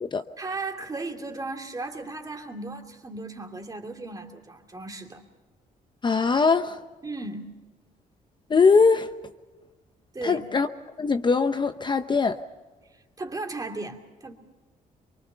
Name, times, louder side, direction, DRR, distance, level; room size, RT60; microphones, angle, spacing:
voice 1, 0.4-5.2 7.0-7.4 10.1-10.4 12.9-14.3, right 3 dB, 25° right, 3 dB, 2.7 m, -36 dB
voice 2, 6.0-6.8 8.5-9.1 10.2-10.7 11.0-12.4, left 4 dB, 30° left, 9 dB, 0.7 m, -21 dB
24.0 x 23.5 x 5.7 m, 1.3 s
cardioid pair, 105°, 15 cm